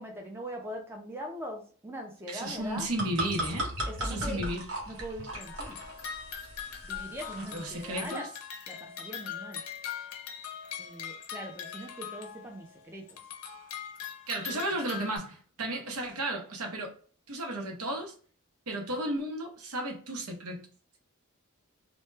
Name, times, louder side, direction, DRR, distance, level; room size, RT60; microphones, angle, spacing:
voice 1, 0.0-2.9 3.9-4.5 4.9-5.8 6.8-8.3 8.7-9.6 10.8-13.2 14.5-14.6, equal, 10° right, 0.3 m, -41 dB
voice 2, 2.3-3.7 4.0-4.7 7.4-8.3 14.3-16.9 17.3-18.1 18.7-20.6, right 1 dB, 85° right, 0.7 m, -34 dB
sound 1, 2.6-8.1, right 1 dB, 60° right, 1.0 m, -37 dB
sound 2, 5.3-12.7 13.1-15.2, left 8 dB, 75° left, 0.5 m, -41 dB
2.1 x 2.1 x 3.1 m
head